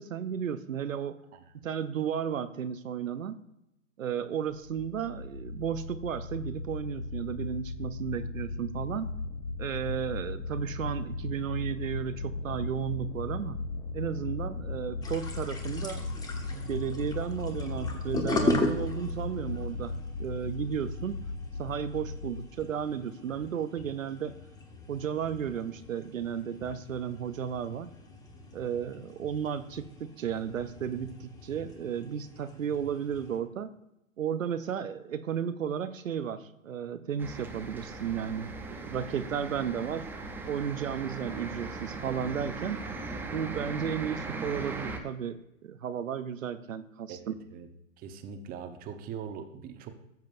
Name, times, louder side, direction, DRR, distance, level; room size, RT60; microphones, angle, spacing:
voice 1, 0.0-1.2 1.5-3.4 4.0-9.1 9.6-13.6 13.9-16.1 16.5-21.2 21.6-24.4 24.9-27.9 28.5-33.7 34.2-40.1 40.5-42.9 43.3-47.4, right 8 dB, 85° right, 11 dB, 0.8 m, -34 dB
sound 1, 4.5-22.4, left 3 dB, 60° left, 1.9 m, -37 dB
sound 2, 15.0-33.4, left 1 dB, 10° left, 1.0 m, -38 dB
sound 3, 37.2-45.0, right 3 dB, 5° right, 0.5 m, -39 dB
voice 2, 47.1-47.7 48.0-49.9, right 7 dB, 25° right, 7 dB, 0.9 m, -41 dB
15.0 x 7.4 x 2.6 m, 0.87 s
hypercardioid pair, 125°, 39 cm